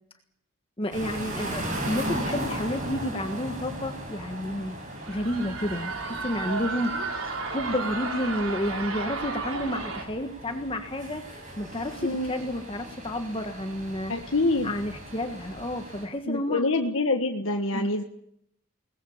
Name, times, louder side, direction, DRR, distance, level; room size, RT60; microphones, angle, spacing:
voice 1, 0.8-4.8 5.1-14.3 14.6-16.6 17.7-17.9, left 1 dB, 25° left, 6 dB, 1.5 m, -31 dB
sound 1, 0.9-16.0, right 1 dB, 40° right, 7.8 m, -37 dB
sound 2, 4.7-10.0, right 3 dB, 85° right, 3.9 m, -33 dB
voice 2, 12.0-12.3 14.1-14.7 16.3-18.0, left 2 dB, 75° left, 3 dB, 1.5 m, -26 dB
22.0 x 20.0 x 7.3 m, 0.74 s
head